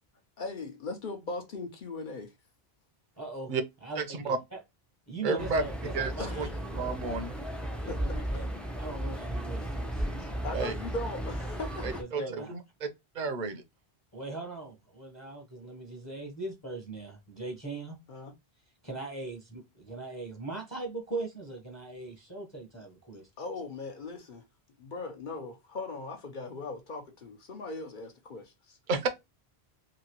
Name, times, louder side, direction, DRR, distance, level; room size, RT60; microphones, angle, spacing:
voice 1, 0.4-2.3 6.2-6.5 7.9-8.1 10.2-11.9 12.2-12.3 18.1-18.3 22.7-22.8 23.4-24.4 24.8-28.8, left 3 dB, 55° left, 0.8 m, -39 dB
voice 2, 3.2-3.5 3.8-4.6 5.1-6.4 7.8-8.5 8.7-10.1 11.8-12.5 14.1-18.0 18.8-23.3, right 3 dB, 20° left, 0.7 m, -40 dB
voice 3, 4.0-4.4 5.2-5.6 5.9-6.5 6.8-7.3 10.5-10.7 11.8-12.6 13.1-13.6 28.9-29.1, right 4 dB, 55° right, 0.7 m, -31 dB
sound 1, 5.4-12.0, right 1 dB, ahead, 0.4 m, -35 dB
3.0 x 2.8 x 2.8 m
omnidirectional pair, 1.0 m